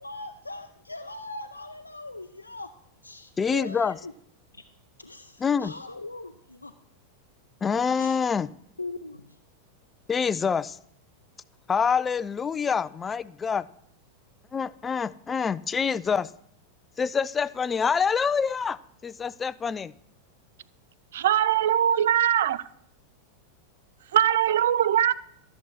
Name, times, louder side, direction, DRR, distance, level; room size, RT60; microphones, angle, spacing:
voice 1, 0.0-2.7 3.0-4.1 5.0-6.7 7.9-8.2 8.8-9.4, left 2 dB, 80° left, 0.5 m, -40 dB
voice 2, 3.4-4.0 5.4-5.7 7.6-8.5 10.1-10.8 11.7-13.7 14.5-16.3 17.0-19.9, left 6 dB, 20° left, 0.4 m, -26 dB
voice 3, 21.1-22.6 24.1-25.1, right 10 dB, 60° right, 0.4 m, -21 dB
13.5 x 7.0 x 6.2 m
figure-of-eight pair, 90°, 0 cm